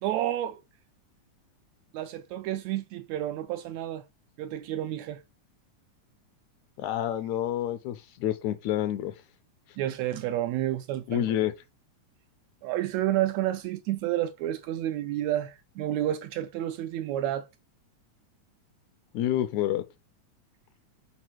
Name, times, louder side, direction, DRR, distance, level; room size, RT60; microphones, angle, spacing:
voice 1, 0.0-0.6 1.9-4.0 4.4-5.2 9.8-11.2 12.6-17.5, right 13 dB, 80° right, 1.6 m, -30 dB
voice 2, 6.8-9.1 11.1-11.5 19.1-19.8, left 12 dB, 80° left, 1.8 m, -28 dB
5.0 x 4.2 x 4.5 m
omnidirectional pair, 3.5 m